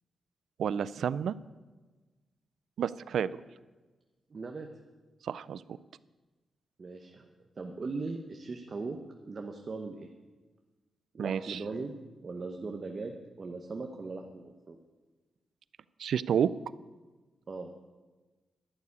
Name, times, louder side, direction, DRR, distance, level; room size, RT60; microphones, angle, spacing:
voice 1, 0.6-1.3 2.8-3.3 5.2-5.6 11.2-11.6 16.0-16.5, right 8 dB, 85° right, 17 dB, 0.4 m, -30 dB
voice 2, 4.3-4.7 6.8-7.3 7.6-9.0 9.3-10.1 11.1-12.0 12.2-14.8 17.5-17.7, right 3 dB, 40° right, 3 dB, 1.0 m, -39 dB
11.5 x 6.9 x 9.5 m, 1.3 s
cardioid pair, 105°, 0 cm